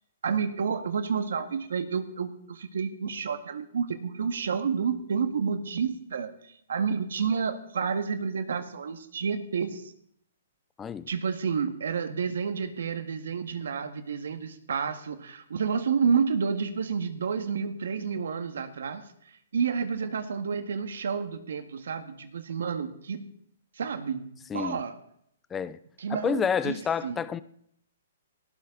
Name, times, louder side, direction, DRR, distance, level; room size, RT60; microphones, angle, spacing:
voice 1, 0.2-9.9 11.1-19.1 19.5-23.3 23.8-25.0 26.0-26.8 27.0-27.2, right 6 dB, 80° right, 1.9 m, -30 dB
voice 2, 10.8-11.1 24.5-24.8 25.5-25.8 26.1-27.4, left 7 dB, 10° left, 0.5 m, -29 dB
18.0 x 16.0 x 4.0 m
hypercardioid pair, 160°, 0 cm